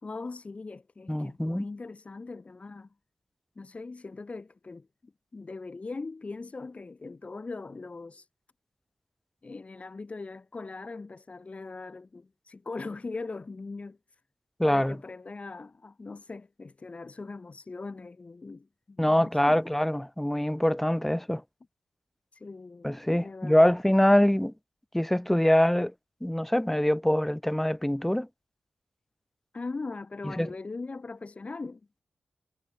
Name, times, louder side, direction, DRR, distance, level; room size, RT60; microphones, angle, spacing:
voice 1, 0.0-2.9 3.6-8.3 9.4-14.0 14.6-19.6 22.3-23.7 29.5-31.8, left 3 dB, 40° left, 3.7 m, -40 dB
voice 2, 1.1-1.7 14.6-15.0 19.0-21.4 22.8-24.5 24.9-25.9 26.2-28.3 30.2-30.5, left 1 dB, 5° left, 2.3 m, -24 dB
cardioid pair, 65°, 3 cm